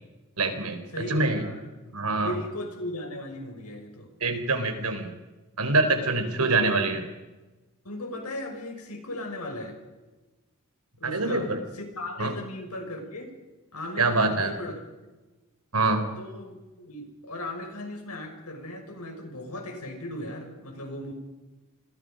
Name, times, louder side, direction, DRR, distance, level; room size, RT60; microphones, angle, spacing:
voice 1, 0.4-1.4 1.9-2.3 4.2-5.1 5.6-7.0 11.0-11.6 12.2-12.3 14.0-14.5 15.7-16.0, right 3 dB, 80° right, 8 dB, 4.0 m, -25 dB
voice 2, 0.9-1.7 2.2-4.1 6.4-6.7 7.8-9.8 11.0-13.3 13.7-14.8 16.2-21.1, left 1 dB, 90° left, 4 dB, 5.8 m, -37 dB
28.0 x 22.0 x 5.3 m, 1.1 s
head